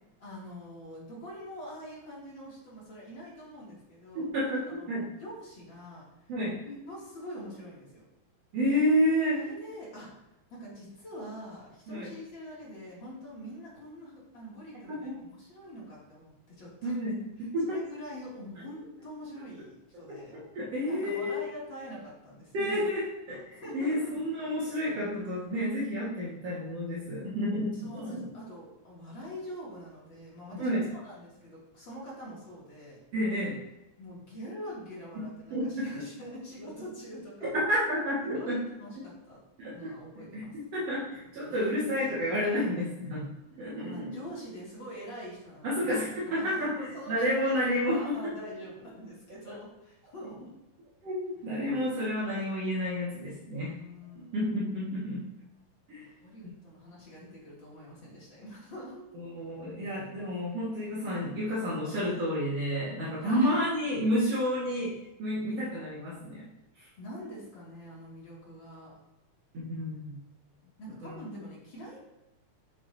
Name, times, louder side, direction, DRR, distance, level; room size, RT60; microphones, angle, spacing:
voice 1, 0.2-4.3 4.8-6.0 6.6-8.1 9.3-10.1 10.5-16.9 17.7-20.3 20.9-22.9 23.6-24.2 27.7-33.0 34.0-37.5 38.2-39.4 39.7-40.5 41.5-41.9 43.8-45.9 46.3-50.5 53.6-54.4 56.0-59.0 63.2-63.6 67.0-68.9 70.8-72.0, equal, 40° left, -7 dB, 3.0 m, -44 dB
voice 2, 4.1-4.6 4.9-5.0 6.3-6.6 8.5-9.4 11.9-12.1 14.9-15.2 16.8-17.2 17.5-17.8 20.1-21.5 22.5-28.3 30.6-30.9 33.1-33.6 35.1-35.2 35.5-36.0 37.4-38.6 39.6-39.9 40.2-43.3 43.6-44.1 45.6-46.7 47.1-48.1 49.5-49.6 51.0-53.7 54.2-55.3 55.9-56.0 59.1-64.9 65.2-66.5 66.8-66.9 69.5-70.2 71.0-71.2, equal, 60° right, -8 dB, 2.7 m, -30 dB
7.7 x 7.5 x 2.7 m, 0.96 s
omnidirectional pair, 3.4 m